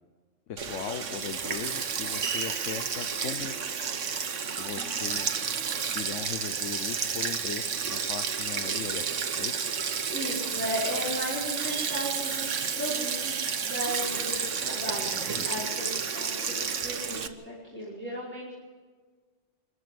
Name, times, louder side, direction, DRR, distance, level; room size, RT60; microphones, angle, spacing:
voice 1, 0.5-3.6 4.6-9.0 9.4-9.6 15.4-15.7, left 8 dB, 80° left, 9 dB, 1.2 m, -39 dB
Sink (filling or washing), 0.6-17.3, right 6 dB, 80° right, 1.5 m, -31 dB
voice 2, 10.1-18.5, equal, 10° left, -8 dB, 5.4 m, -35 dB
26.0 x 14.5 x 7.7 m, 1.5 s
omnidirectional pair, 1.2 m